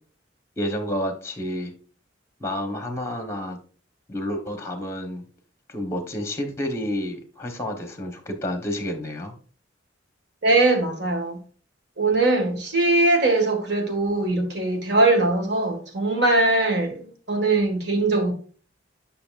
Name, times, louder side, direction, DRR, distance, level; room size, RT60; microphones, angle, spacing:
voice 1, 0.6-1.7 2.4-3.6 4.1-5.2 5.7-9.3, left 1 dB, 15° left, 1.1 m, -30 dB
voice 2, 10.4-11.4 12.0-18.3, right 2 dB, 60° right, 1.8 m, -21 dB
9.7 x 5.8 x 2.5 m
head